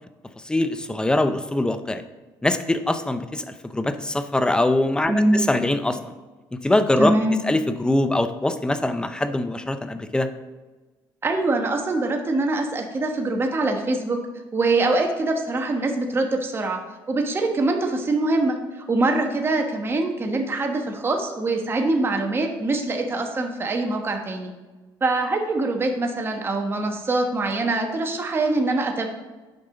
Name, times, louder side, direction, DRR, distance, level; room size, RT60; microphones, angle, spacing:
voice 1, 0.4-2.0 2.4-6.1 6.5-7.1 7.4-10.3, left 1 dB, 10° left, 10 dB, 0.6 m, -23 dB
voice 2, 5.1-5.4 7.0-7.4 11.2-14.2 14.5-16.8 17.1-24.5 25.0-29.1, right 2 dB, 25° right, 3 dB, 1.2 m, -23 dB
8.9 x 5.4 x 3.9 m, 1.2 s
cardioid pair, 100°, 9 cm